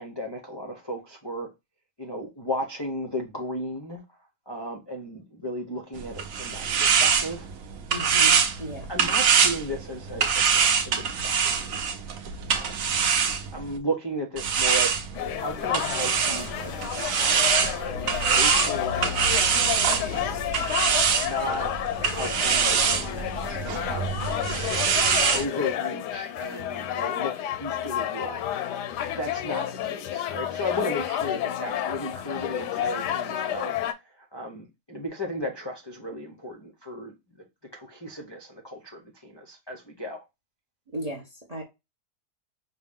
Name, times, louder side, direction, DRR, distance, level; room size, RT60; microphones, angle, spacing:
voice 1, 0.0-1.5 2.0-4.0 4.5-7.5 8.9-11.8 12.5-12.9 13.5-15.0 15.4-19.3 19.8-20.4 21.2-21.7 22.1-24.9 25.3-28.4 29.1-33.7 34.3-37.1 37.7-40.2, equal, 35° left, 0.4 m, -35 dB
sound 1, 5.9-13.8 14.4-25.4, right 6 dB, 65° right, 1.0 m, -24 dB
voice 2, 7.9-8.9 40.9-41.6, right 1 dB, 40° right, 0.5 m, -35 dB
sound 2, 15.1-33.9, left 11 dB, 85° left, 1.2 m, -30 dB
5.4 x 2.2 x 3.5 m
omnidirectional pair, 1.7 m